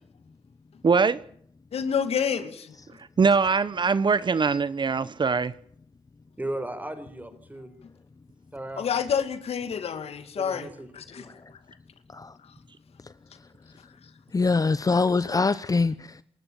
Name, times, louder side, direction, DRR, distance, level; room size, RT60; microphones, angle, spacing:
voice 1, 0.8-1.2 3.0-5.5, right 5 dB, 50° right, 1.1 m, -22 dB
voice 2, 1.7-2.7 8.8-11.3, left 7 dB, 80° left, 2.5 m, -28 dB
voice 3, 6.4-7.7 8.5-8.9 10.4-10.9 11.1-11.2, right 1 dB, 15° right, 5.0 m, -35 dB
voice 4, 14.3-16.2, left 4 dB, 35° left, 1.0 m, -24 dB
27.5 x 13.0 x 8.9 m
cardioid pair, 65°, 10 cm